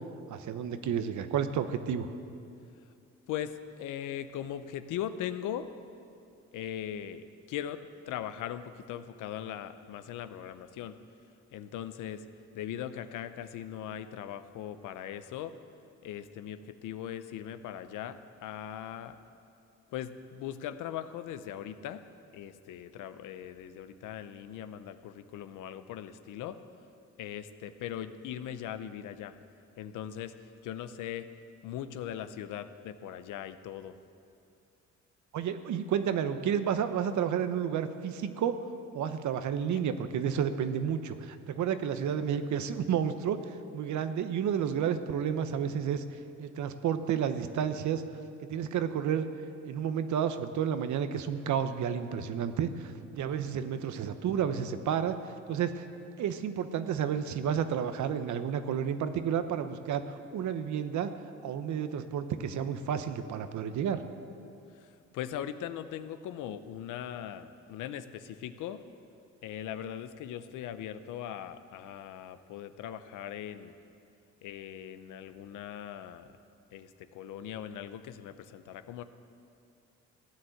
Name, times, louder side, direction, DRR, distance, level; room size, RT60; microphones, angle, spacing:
voice 1, 0.3-2.1 35.3-38.5 38.9-43.4 43.7-46.0 46.4-48.0 48.5-49.3 49.6-55.2 55.5-55.9 56.2-61.1 61.4-64.0, right 8 dB, 70° right, 10 dB, 1.0 m, -31 dB
voice 2, 3.3-5.7 6.5-11.0 11.5-12.2 12.5-15.5 16.0-19.2 19.9-22.0 22.3-26.6 27.2-29.4 29.8-31.3 31.6-34.0 64.7-68.8 69.4-73.7 74.4-76.3 76.7-79.0, left 10 dB, 90° left, 11 dB, 0.8 m, -40 dB
16.0 x 9.7 x 7.8 m, 2.6 s
cardioid pair, 90°, 30 cm